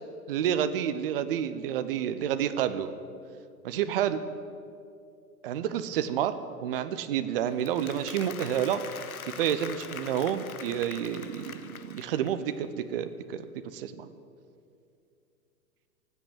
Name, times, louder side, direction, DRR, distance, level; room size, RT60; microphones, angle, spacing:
voice 1, 0.3-2.9 3.6-4.2 5.4-6.3 6.6-8.8 9.2-13.5 13.7-14.1, right 9 dB, 40° right, 11 dB, 0.8 m, -29 dB
Applause, 7.5-12.5, left 6 dB, 70° left, 1.1 m, -43 dB
18.0 x 8.1 x 9.3 m, 2.4 s
figure-of-eight pair, 110°, 45 cm